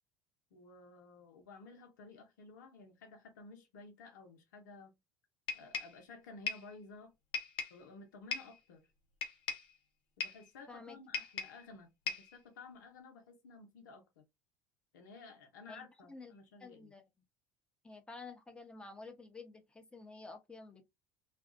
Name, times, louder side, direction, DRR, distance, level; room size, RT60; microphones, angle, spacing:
voice 1, 0.5-4.9 5.5-7.1 7.7-8.9 10.2-14.2 14.9-16.9, left 3 dB, 85° left, 0.9 m, -54 dB
sound 1, 5.5-6.0 6.5-6.7 7.3-7.8 8.3-8.6 9.2-9.7 10.2-10.5 11.1-11.6 12.1-12.3, left 6 dB, 60° left, 0.8 m, -39 dB
voice 2, 15.7-16.3 16.6-17.0 17.8-20.8, left 3 dB, 10° left, 0.9 m, -51 dB
2.6 x 2.4 x 2.4 m
hypercardioid pair, 80°, 10 cm